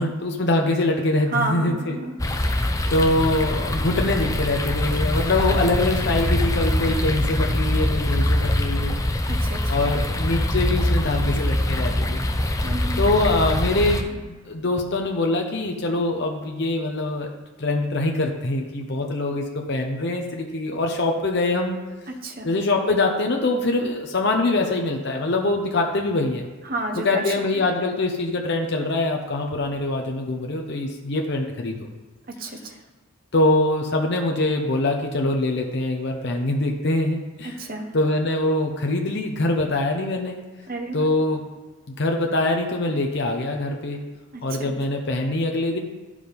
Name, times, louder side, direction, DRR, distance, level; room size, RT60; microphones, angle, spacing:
voice 1, 0.0-2.0 2.3-2.6 2.9-8.9 9.7-12.2 13.0-17.3 17.6-21.8 22.4-26.5 26.9-31.9 33.3-37.5 37.9-40.4 40.9-41.4 42.0-44.0 44.4-45.8, left 2 dB, 55° left, 2 dB, 0.8 m, -23 dB
voice 2, 1.3-2.1 9.3-9.9 12.6-13.0 22.2-22.5 26.6-27.7 32.3-32.8 37.4-37.9 40.7-41.1 44.3-44.7, right 2 dB, 45° right, 3 dB, 1.0 m, -31 dB
sound 1, 2.2-14.0, left 1 dB, 15° left, 0.5 m, -23 dB
11.5 x 4.9 x 5.2 m, 1.3 s
head